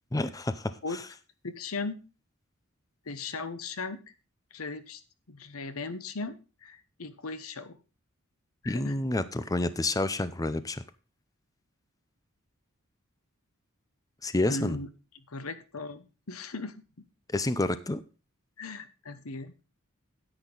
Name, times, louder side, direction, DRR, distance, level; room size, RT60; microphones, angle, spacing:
voice 1, 0.1-1.0 8.6-10.8 14.2-14.8 17.3-18.0, left 2 dB, 15° left, 13 dB, 0.6 m, -29 dB
voice 2, 1.4-2.0 3.1-4.0 4.5-5.0 5.3-7.8 8.6-9.0 14.5-14.9 15.3-17.1 18.6-19.5, left 3 dB, 85° left, 12 dB, 1.1 m, -38 dB
10.0 x 9.1 x 3.9 m, 0.32 s
head